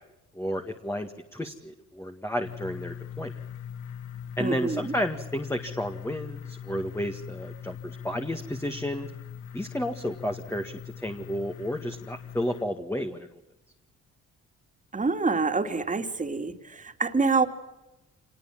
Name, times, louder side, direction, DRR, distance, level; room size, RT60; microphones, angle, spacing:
voice 1, 0.4-3.3 4.4-9.1 9.5-13.3, equal, 10° left, 5 dB, 1.9 m, -32 dB
sound 1, 2.4-12.6, left 8 dB, 90° left, 1.8 m, -41 dB
voice 2, 4.4-4.9 14.9-17.5, right 4 dB, 25° right, 7 dB, 2.6 m, -26 dB
26.0 x 20.0 x 7.4 m, 0.98 s
cardioid pair, 90°, 30 cm